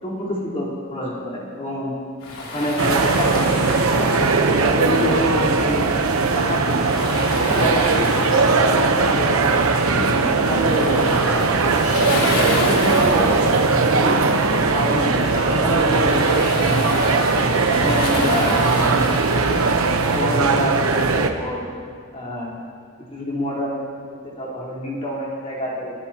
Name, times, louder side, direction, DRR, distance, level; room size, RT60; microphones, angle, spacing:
voice 1, 0.0-1.9 2.5-4.1 4.6-7.1 7.5-11.4 12.3-14.2 14.5-17.1 17.7-19.7 20.1-21.6 22.1-22.5 23.1-25.9, left 1 dB, 30° left, -6 dB, 4.0 m, -28 dB
Waves surf, 2.2-20.2, left 2 dB, 85° left, 3.0 m, -31 dB
sound 1, 2.8-21.3, right 3 dB, 80° right, 1.0 m, -19 dB
24.0 x 15.0 x 3.0 m, 2.3 s
head